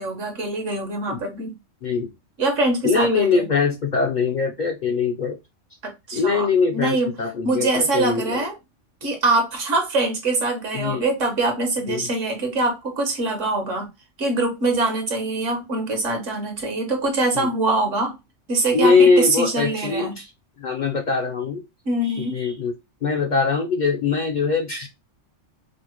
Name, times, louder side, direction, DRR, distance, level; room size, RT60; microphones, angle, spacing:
voice 1, 0.0-1.5 2.4-3.4 5.8-6.5 6.7-7.1 7.4-8.5 9.0-13.9 14.2-18.2 18.5-20.1 21.8-22.5, right 2 dB, 80° right, 1.5 m, -23 dB
voice 2, 2.8-5.4 6.1-8.4 10.7-11.0 11.9-12.1 17.3-17.5 18.7-20.3 20.6-21.6 22.2-22.7 23.0-24.9, left 4 dB, 50° left, 0.6 m, -22 dB
5.2 x 2.1 x 3.0 m
omnidirectional pair, 1.3 m